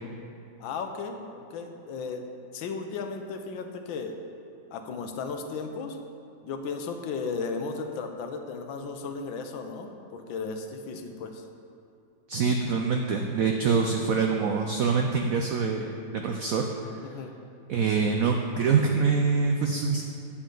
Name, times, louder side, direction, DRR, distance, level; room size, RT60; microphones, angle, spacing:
voice 1, 0.6-2.3 2.5-4.2 4.7-6.0 6.4-11.4 17.0-17.3, left 4 dB, 80° left, 5 dB, 1.5 m, -35 dB
voice 2, 12.3-17.2 17.7-20.0, right 5 dB, 80° right, 3 dB, 0.7 m, -25 dB
9.4 x 8.4 x 3.8 m, 2.7 s
omnidirectional pair, 2.1 m